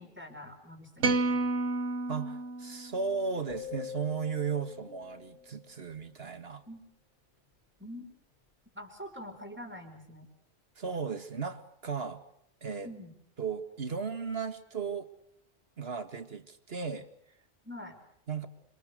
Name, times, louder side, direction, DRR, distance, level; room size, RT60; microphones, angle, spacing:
voice 1, 0.0-1.7 6.7-6.8 7.8-8.1 8.7-10.3 12.8-13.1 17.6-18.0, left 1 dB, 10° right, 4 dB, 4.8 m, -45 dB
sound 1, 1.0-3.4, right 2 dB, 75° right, 1.7 m, -31 dB
voice 2, 2.1-6.6 10.8-12.2 12.6-12.9 13.4-15.1 15.8-17.1 18.3-18.5, right 5 dB, 60° right, 9 dB, 2.1 m, -35 dB
sound 2, 3.5-5.8, left 9 dB, 45° left, 2.8 m, -44 dB
27.0 x 27.0 x 6.8 m, 0.70 s
omnidirectional pair, 1.2 m